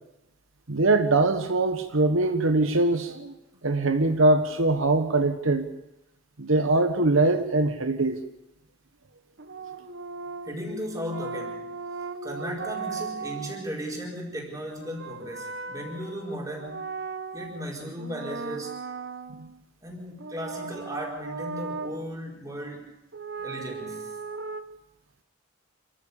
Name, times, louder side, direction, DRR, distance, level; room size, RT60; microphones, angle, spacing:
voice 1, 0.7-3.3 3.6-5.7 6.4-8.2 19.4-19.5, right 2 dB, 75° right, 7 dB, 1.2 m, -22 dB
sound 1, 9.4-13.7 14.7-17.7 18.0-19.6 20.2-22.1 23.1-24.6, right 4 dB, 55° right, 1.2 m, -37 dB
voice 2, 10.4-11.7 12.0-17.0 17.3-18.8 19.8-22.9 23.4-24.2, equal, 15° right, -1 dB, 4.8 m, -36 dB
27.5 x 14.5 x 7.0 m, 0.89 s
head